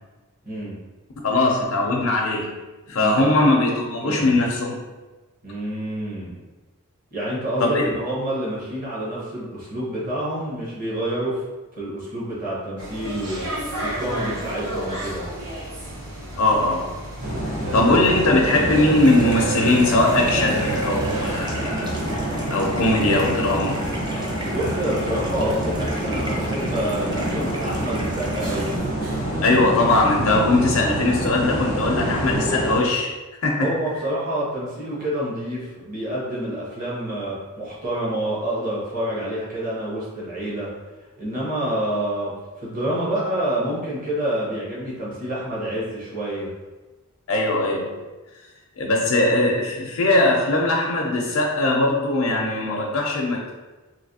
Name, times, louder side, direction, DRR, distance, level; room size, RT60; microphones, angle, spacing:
voice 1, 0.4-0.8 2.9-3.7 4.0-4.4 5.4-6.3 7.1-11.4 11.8-13.5 13.8-15.3 17.7-18.0 24.5-28.7 33.6-40.7 41.2-42.3 42.6-46.5, right 1 dB, 40° right, -7 dB, 1.1 m, -28 dB
voice 2, 1.2-2.5 2.9-4.8 7.6-7.8 16.4-16.9 17.7-23.8 29.4-33.1 33.4-33.7 47.3-47.9 48.8-53.5, left 2 dB, 70° left, -1 dB, 0.5 m, -20 dB
sound 1, 12.8-32.4, right 1 dB, 85° right, 0.9 m, -34 dB
sound 2, 17.2-32.8, right 1 dB, 60° right, 1.3 m, -27 dB
sound 3, 18.9-28.8, equal, 20° right, 0.5 m, -36 dB
3.3 x 2.6 x 2.7 m, 1.2 s
head